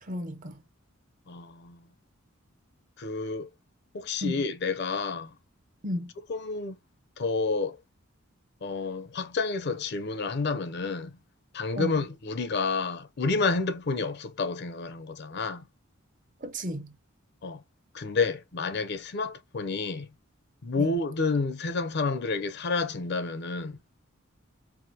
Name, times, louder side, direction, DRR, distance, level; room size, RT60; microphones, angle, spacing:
voice 1, 0.0-0.6 4.2-4.4 5.8-6.1 11.8-12.0 16.4-17.0 20.8-20.9, equal, 40° right, 0.6 m, -33 dB
voice 2, 1.3-1.8 3.0-3.5 3.9-5.3 6.3-6.8 7.2-7.8 8.6-11.1 11.5-15.6 17.4-17.6 17.9-20.1 20.6-23.8, left 4 dB, 50° left, 0.5 m, -29 dB
4.7 x 2.0 x 2.7 m
head